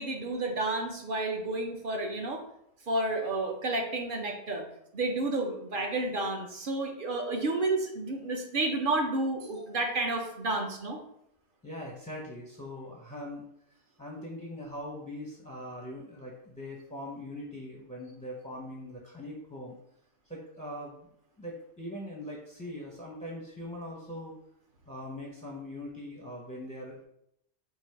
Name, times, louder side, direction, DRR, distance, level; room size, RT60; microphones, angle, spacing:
voice 1, 0.0-2.4 2.9-4.6 4.9-11.0, right 2 dB, 50° right, 2 dB, 0.8 m, -31 dB
voice 2, 11.6-13.4 14.0-19.8 20.3-21.1 21.4-24.4 24.9-27.0, left 1 dB, 10° left, -2 dB, 0.5 m, -41 dB
4.6 x 2.5 x 4.5 m, 0.75 s
omnidirectional pair, 1.2 m